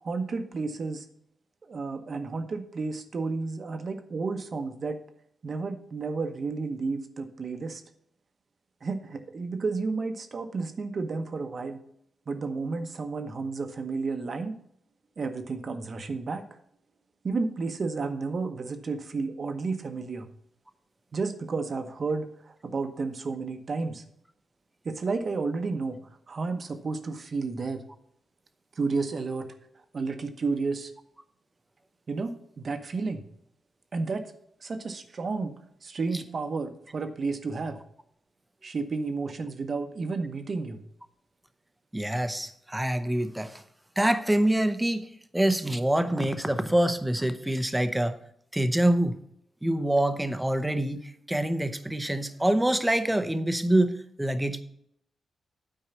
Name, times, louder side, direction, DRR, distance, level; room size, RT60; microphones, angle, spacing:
voice 1, 0.0-1.0 1.7-5.0 5.4-7.8 8.8-11.8 12.3-14.5 15.2-16.5 17.2-20.3 21.1-22.3 22.6-24.0 24.8-26.0 26.3-27.8 28.8-29.5 29.9-30.9 32.1-33.2 33.9-34.3 34.6-35.5 35.8-37.8 38.6-40.8, right 4 dB, 50° right, 7 dB, 1.0 m, -31 dB
voice 2, 41.9-43.6 44.0-48.2 48.5-49.1 49.6-54.6, right 1 dB, 10° right, 10 dB, 0.8 m, -26 dB
9.0 x 4.7 x 6.9 m, 0.71 s
cardioid pair, 90°, 0 cm